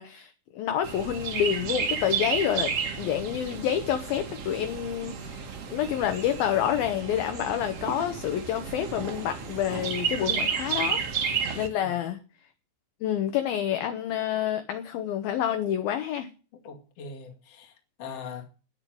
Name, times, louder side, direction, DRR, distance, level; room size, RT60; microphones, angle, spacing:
voice 1, 0.0-11.0 11.5-12.2 13.0-16.3, left 10 dB, 75° left, 2.3 m, -28 dB
Chirp tweet, 0.8-11.7, right 6 dB, 85° right, 1.3 m, -32 dB
voice 2, 11.8-12.1 16.6-18.5, left 5 dB, 45° left, 2.4 m, -41 dB
10.5 x 8.7 x 9.2 m
omnidirectional pair, 5.3 m